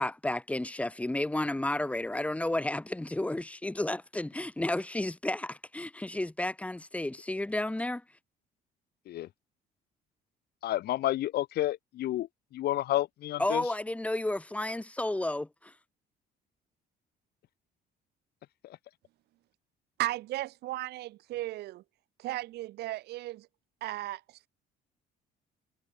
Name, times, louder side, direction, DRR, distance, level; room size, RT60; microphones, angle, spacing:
voice 1, 0.0-8.0 13.4-15.7, left 1 dB, 10° left, 2.4 m, -32 dB
voice 2, 10.6-13.7 18.6-18.8, left 14 dB, 70° left, 2.5 m, -31 dB
voice 3, 20.0-21.8 22.2-23.5 23.8-24.5, right 16 dB, 75° right, 1.1 m, -35 dB
cardioid pair, 110°, 17 cm